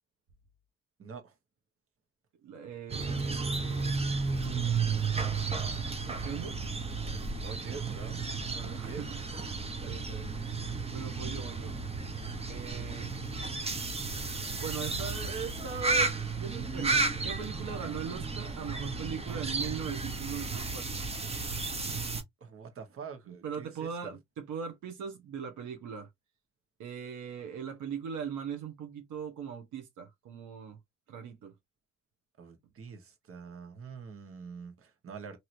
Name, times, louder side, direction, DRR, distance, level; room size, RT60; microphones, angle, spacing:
voice 1, 1.0-1.3 7.4-8.2 8.6-9.1 9.9-10.0 10.3-10.5 22.4-24.1 32.4-35.4, right 5 dB, 45° right, 1.2 m, -46 dB
voice 2, 2.4-4.0 6.0-6.6 8.5-9.2 9.5-10.3 10.6-11.7 12.5-13.1 14.6-21.0 21.3-21.4 23.3-26.1 26.8-30.8 31.1-31.5, right 7 dB, 75° right, 0.9 m, -40 dB
sound 1, 2.9-22.2, right 4 dB, 20° right, 0.8 m, -33 dB
3.0 x 2.8 x 2.6 m
cardioid pair, 90°, 30 cm